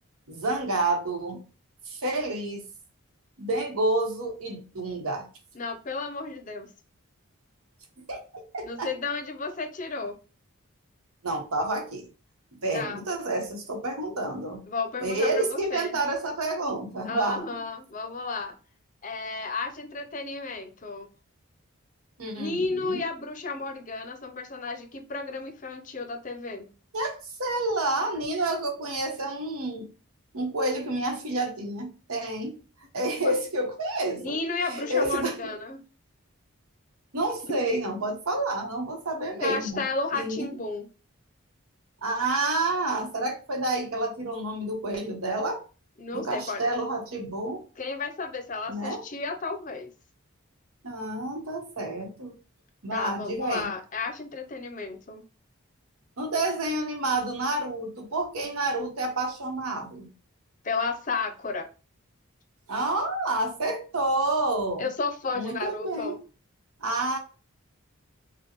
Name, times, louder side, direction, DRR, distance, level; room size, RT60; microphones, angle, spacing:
voice 1, 0.3-1.4 1.8-2.7 3.4-5.3 8.1-8.9 11.2-12.1 12.6-14.6 15.0-17.5 22.2-23.0 26.9-29.9 30.3-32.6 32.9-34.4 34.6-35.5 37.1-39.8 40.1-40.5 42.0-45.6 46.1-47.6 48.7-49.0 50.8-52.3 52.8-53.7 56.2-60.1 62.7-64.9 65.3-66.2 66.8-67.2, right 2 dB, 85° right, 3 dB, 1.1 m, -29 dB
voice 2, 5.5-6.7 8.6-10.2 12.7-13.0 14.7-16.0 17.0-18.6 19.0-21.1 22.4-26.7 33.2-33.3 34.2-35.8 37.5-37.6 39.4-40.9 46.0-46.6 47.8-49.9 52.9-55.2 60.6-61.7 64.8-66.2, left 4 dB, 35° left, 7 dB, 0.5 m, -33 dB
5.2 x 2.2 x 3.0 m, 0.35 s
head